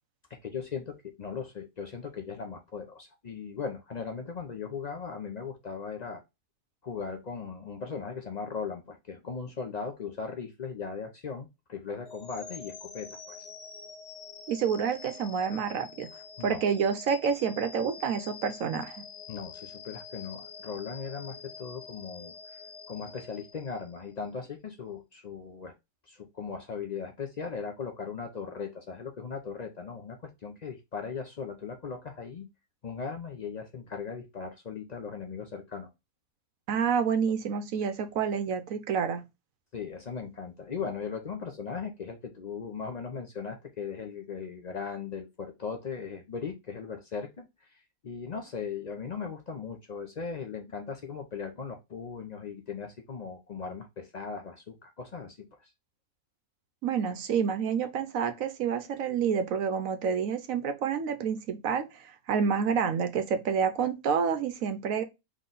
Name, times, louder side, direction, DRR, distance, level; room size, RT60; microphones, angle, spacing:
voice 1, 0.3-6.2 6.8-13.5 16.4-16.7 19.3-22.6 22.9-25.7 26.0-32.5 32.8-35.9 39.7-55.7, left 5 dB, 90° left, 0.3 m, -38 dB
sound 1, 12.0-24.2, left 5 dB, 50° left, 1.1 m, -46 dB
voice 2, 14.5-16.1 16.4-19.0 36.7-39.2 56.8-65.0, right 6 dB, 65° right, 1.0 m, -28 dB
4.0 x 3.1 x 3.8 m
omnidirectional pair, 1.6 m